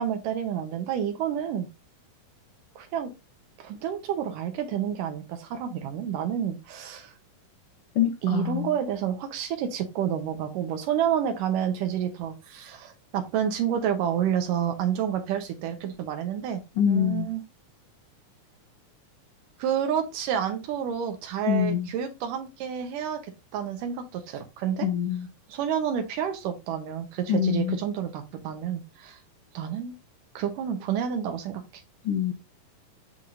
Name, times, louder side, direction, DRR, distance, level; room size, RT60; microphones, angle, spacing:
voice 1, 0.0-1.7 2.8-3.1 3.6-7.1 8.2-17.4 19.6-24.9 25.5-29.2 29.5-29.9 30.4-31.8, right 9 dB, 75° right, 2.5 m, -29 dB
voice 2, 7.9-8.7 16.8-17.3 21.5-21.9 24.8-25.3 27.3-27.8 32.0-32.3, left 9 dB, 75° left, 1.3 m, -25 dB
10.5 x 3.6 x 2.6 m
omnidirectional pair, 4.0 m